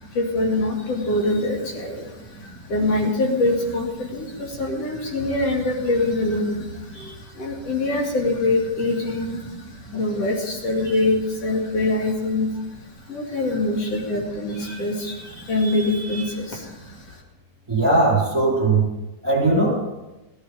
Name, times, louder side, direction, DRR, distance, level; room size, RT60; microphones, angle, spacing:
voice 1, 0.0-12.6 13.1-17.2, left 2 dB, 55° left, -1 dB, 3.4 m, -24 dB
voice 2, 17.7-18.9 19.2-19.9, right 2 dB, 5° right, -4 dB, 4.0 m, -19 dB
16.5 x 11.0 x 5.0 m, 1.0 s
omnidirectional pair, 3.5 m